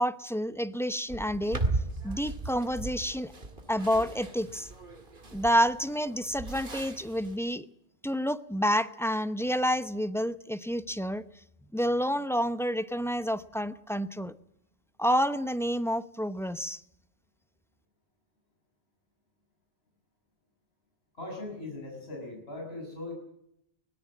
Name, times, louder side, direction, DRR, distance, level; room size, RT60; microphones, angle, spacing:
voice 1, 0.0-1.6 2.0-3.3 3.7-4.7 5.3-7.7 8.0-11.2 11.7-14.3 15.0-16.8, equal, 5° left, 13 dB, 0.7 m, -29 dB
sound 1, 1.1-7.4, right 2 dB, 50° right, 2.5 m, -37 dB
voice 2, 21.1-23.1, left 2 dB, 65° left, 0 dB, 6.5 m, -39 dB
22.5 x 18.0 x 7.5 m, 0.79 s
omnidirectional pair, 1.1 m